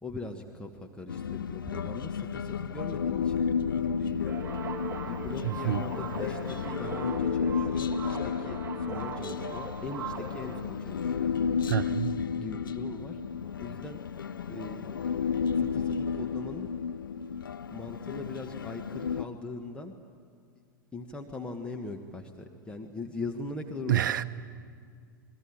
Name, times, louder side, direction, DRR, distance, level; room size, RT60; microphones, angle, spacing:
voice 1, 0.0-3.4 4.0-4.4 5.0-11.3 12.4-13.2 13.6-14.0 14.5-15.0 15.6-16.7 17.7-19.9 20.9-24.2, left 3 dB, 10° left, 1.6 m, -41 dB
Human voice, 1.1-19.2, left 6 dB, 70° left, 0.6 m, -32 dB
sound 1, 4.2-10.6, right 5 dB, 20° right, 4.1 m, -39 dB
voice 2, 5.4-5.8 11.7-12.2 23.9-24.2, right 13 dB, 60° right, 0.8 m, -28 dB
28.0 x 21.0 x 9.0 m
figure-of-eight pair, 95°, 11 cm